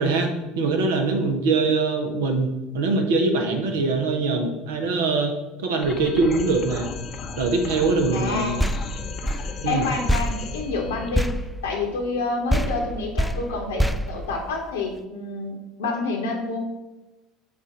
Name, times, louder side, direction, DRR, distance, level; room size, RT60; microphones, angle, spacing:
voice 1, 0.0-5.3 5.6-6.9 7.4-8.7 9.6-9.9, right 3 dB, 70° right, 4 dB, 0.9 m, -23 dB
sound 1, 5.8-11.1, left 5 dB, 40° left, 0.8 m, -35 dB
voice 2, 8.1-8.6 9.6-11.3 11.6-16.6, left 3 dB, 75° left, 0 dB, 1.3 m, -28 dB
sound 2, 8.6-12.2 12.5-15.0, equal, ahead, 0.3 m, -27 dB
7.1 x 2.6 x 5.7 m, 1.0 s
figure-of-eight pair, 70°, 0 cm